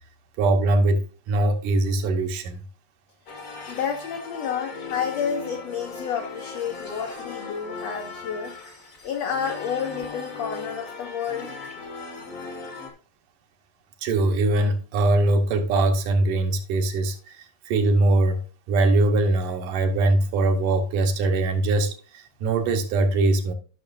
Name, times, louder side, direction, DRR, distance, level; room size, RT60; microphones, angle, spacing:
voice 1, 0.4-2.6 14.0-18.4 18.7-23.5, right 2 dB, 75° right, 2.5 m, -22 dB
sound 1, 3.3-12.9, left 4 dB, 65° left, 0.8 m, -38 dB
voice 2, 3.7-8.5 9.0-11.6, left 7 dB, 85° left, 1.4 m, -30 dB
13.0 x 6.1 x 2.5 m
omnidirectional pair, 3.9 m